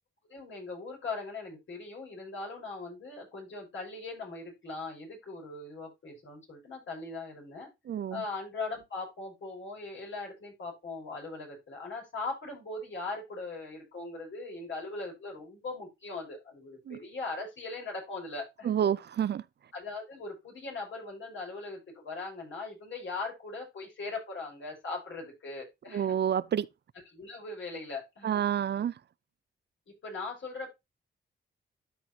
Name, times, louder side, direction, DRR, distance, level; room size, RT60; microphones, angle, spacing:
voice 1, 0.3-7.7 8.1-18.8 19.7-26.1 27.1-28.4 29.9-30.7, left 3 dB, 70° left, 5.4 m, -40 dB
voice 2, 7.9-8.2 16.9-17.0 18.6-19.4 25.9-26.7 28.2-28.9, right 9 dB, 55° right, 0.4 m, -28 dB
12.5 x 4.7 x 2.8 m
cardioid pair, 70°, 21 cm